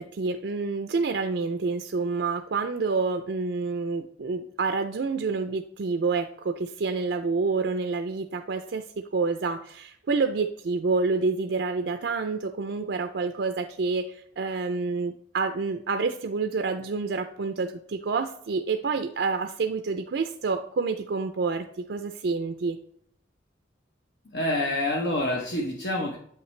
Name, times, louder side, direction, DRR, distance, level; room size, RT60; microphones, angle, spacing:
voice 1, 0.0-22.8, right 4 dB, 70° right, 7 dB, 0.4 m, -28 dB
voice 2, 24.3-26.2, left 1 dB, 65° left, 0 dB, 0.9 m, -27 dB
7.9 x 5.7 x 3.2 m, 0.66 s
head